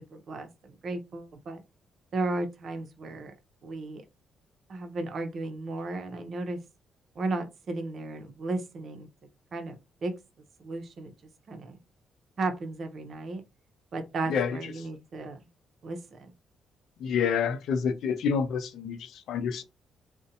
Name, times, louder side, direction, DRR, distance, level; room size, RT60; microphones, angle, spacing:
voice 1, 0.1-1.6 2.1-3.3 3.6-4.0 4.7-6.6 7.2-9.1 9.5-10.1 10.6-11.1 11.5-11.8 12.4-13.4 13.9-15.4 15.8-16.3, right 2 dB, 60° right, 0.6 m, -34 dB
voice 2, 17.0-19.6, left 6 dB, 80° left, 0.4 m, -28 dB
2.5 x 2.1 x 2.6 m
cardioid pair, 75°, 0 cm